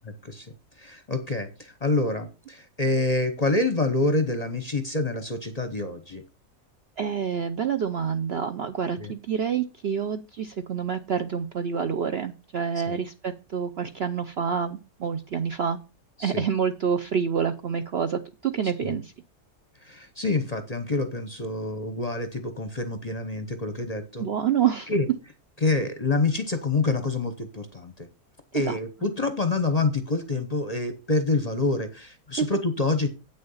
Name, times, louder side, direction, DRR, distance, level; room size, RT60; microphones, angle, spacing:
voice 1, 0.2-6.2 9.0-9.1 12.9-13.0 16.2-16.4 18.8-19.0 19.8-24.2 24.9-25.1 25.6-28.1 28.5-33.1, left 3 dB, 30° left, 9 dB, 0.8 m, -27 dB
voice 2, 7.0-15.8 16.2-19.1 24.2-24.9 28.7-28.8 32.4-32.5, right 7 dB, 60° right, 8 dB, 0.7 m, -27 dB
8.6 x 6.4 x 5.5 m, 0.31 s
omnidirectional pair, 1.6 m